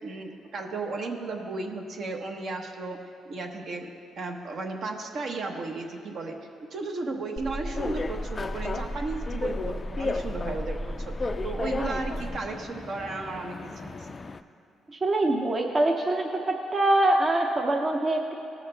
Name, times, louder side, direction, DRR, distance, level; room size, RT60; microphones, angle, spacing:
voice 1, 0.0-3.0 3.2-3.9 4.1-6.4 6.7-14.1, right 3 dB, 60° right, 3 dB, 1.1 m, -34 dB
sound 1, 7.4-12.4, equal, 15° right, 1.2 m, -35 dB
sound 2, 7.7-14.4, left 3 dB, 30° left, 0.3 m, -35 dB
voice 2, 14.9-16.4 16.7-18.3, right 1 dB, 30° right, 2 dB, 0.7 m, -24 dB
17.0 x 6.4 x 3.4 m, 2.7 s
cardioid pair, 90°, 0 cm